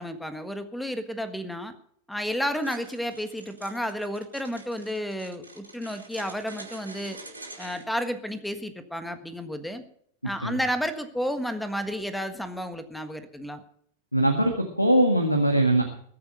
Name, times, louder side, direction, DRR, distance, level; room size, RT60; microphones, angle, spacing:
voice 1, 0.0-1.7 2.1-7.2 7.6-9.8 10.2-13.6, equal, 5° left, 10 dB, 1.5 m, -31 dB
sound 1, 2.6-7.8, right 2 dB, 80° right, 4.9 m, -45 dB
voice 2, 14.1-15.8, right 1 dB, 90° left, 5 dB, 1.9 m, -21 dB
21.5 x 8.7 x 5.6 m, 0.63 s
figure-of-eight pair, 90°, 0 cm